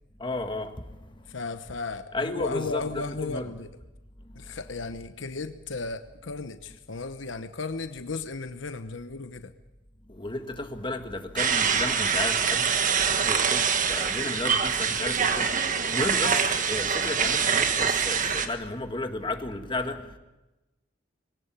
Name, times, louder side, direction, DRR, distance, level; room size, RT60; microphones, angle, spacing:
voice 1, 0.2-0.7 2.1-3.5 10.2-12.7 13.2-15.5 15.9-16.4 16.7-20.0, left 2 dB, 25° left, 1.7 m, -33 dB
voice 2, 1.3-3.7 4.3-9.5 16.2-16.4, left 4 dB, 75° left, 1.0 m, -35 dB
sound 1, 11.4-18.5, right 6 dB, 45° right, 1.5 m, -25 dB
22.0 x 17.5 x 8.9 m
head